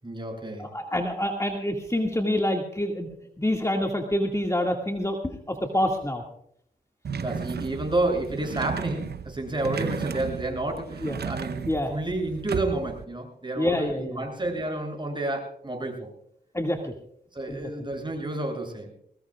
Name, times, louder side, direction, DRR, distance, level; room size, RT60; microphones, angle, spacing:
voice 1, 0.0-0.7 7.2-16.1 17.3-18.9, right 2 dB, 25° right, 1 dB, 7.8 m, -30 dB
voice 2, 0.6-3.1 3.4-6.2 11.0-11.2 11.7-11.9 13.6-14.2 16.5-16.9 17.5-17.7, left 1 dB, 15° left, 2 dB, 2.1 m, -27 dB
sound 1, 7.0-13.0, right 6 dB, 70° right, 0.9 m, -34 dB
22.0 x 19.5 x 2.4 m, 0.69 s
cardioid pair, 55°, 17 cm